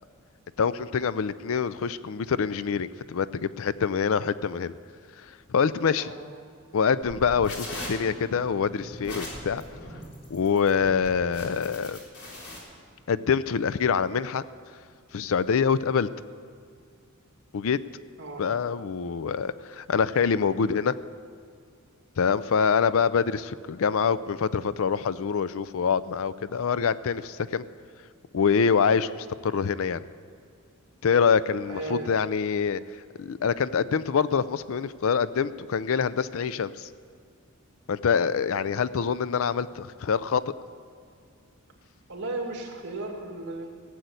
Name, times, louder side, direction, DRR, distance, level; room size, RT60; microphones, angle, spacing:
voice 1, 0.6-4.8 5.2-6.1 6.7-9.6 10.3-12.0 13.1-14.4 15.1-16.1 17.5-17.8 18.4-20.9 22.2-27.7 28.3-30.1 31.0-32.8 33.2-36.9 37.9-40.4, left 6 dB, 65° left, 16 dB, 0.4 m, -25 dB
sound 1, 7.1-12.6, left 1 dB, 85° left, 3.8 m, -39 dB
voice 2, 31.7-32.1 42.1-43.7, right 2 dB, 55° right, 1 dB, 2.5 m, -35 dB
16.0 x 7.8 x 8.2 m, 2.3 s
head